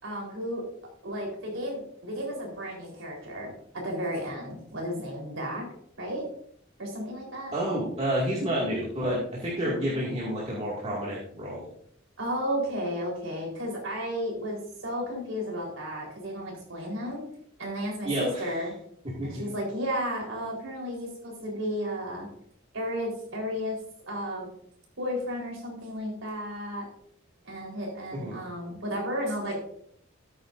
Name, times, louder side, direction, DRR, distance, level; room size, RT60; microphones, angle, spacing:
voice 1, 0.0-0.6 1.0-5.7 6.0-6.3 6.8-7.5 12.2-17.2 17.6-18.7 19.2-22.3 22.7-23.8 24.1-24.5 25.0-26.8 27.4-29.6, equal, 90° right, -1 dB, 4.1 m, -33 dB
voice 2, 7.5-11.7 18.0-18.5 19.0-19.4 28.1-28.4, equal, 35° right, -6 dB, 2.3 m, -29 dB
13.5 x 9.3 x 2.6 m, 0.68 s
head